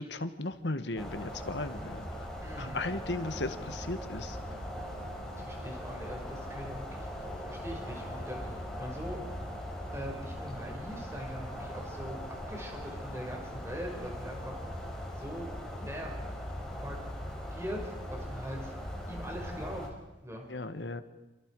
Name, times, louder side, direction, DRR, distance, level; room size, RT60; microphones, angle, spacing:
voice 1, 0.0-2.3 2.6-4.6 20.5-21.0, left 2 dB, 80° left, 9 dB, 1.7 m, -36 dB
sound 1, 1.0-19.9, equal, 5° left, 5.1 m, -40 dB
voice 2, 2.4-2.8 5.4-9.2 9.9-12.2 12.5-14.6 15.1-15.5 15.8-16.1 16.8-17.0 17.5-18.7 19.1-19.9 20.2-20.4, equal, 15° right, 0 dB, 5.7 m, -42 dB
29.0 x 27.5 x 4.9 m, 1.1 s
head